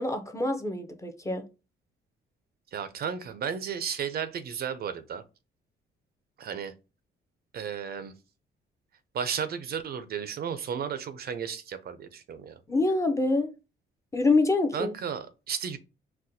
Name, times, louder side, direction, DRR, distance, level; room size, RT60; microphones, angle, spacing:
voice 1, 0.0-1.4 12.7-13.5 14.1-15.0, left 2 dB, 15° left, 0.5 m, -25 dB
voice 2, 2.7-5.2 6.4-6.7 7.5-8.1 9.1-12.6 14.7-15.8, right 7 dB, 50° right, 0.4 m, -34 dB
4.1 x 2.1 x 2.6 m
cardioid pair, 90°, 20 cm